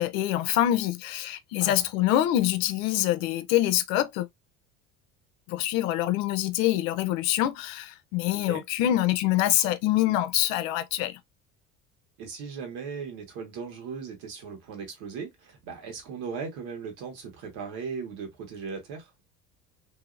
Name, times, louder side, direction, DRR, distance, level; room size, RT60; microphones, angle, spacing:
voice 1, 0.0-4.3 5.5-11.2, left 13 dB, 65° left, 0.6 m, -25 dB
voice 2, 8.3-8.6 12.2-19.1, right 5 dB, 60° right, 1.4 m, -38 dB
2.8 x 2.8 x 2.4 m
hypercardioid pair, 65°, 42 cm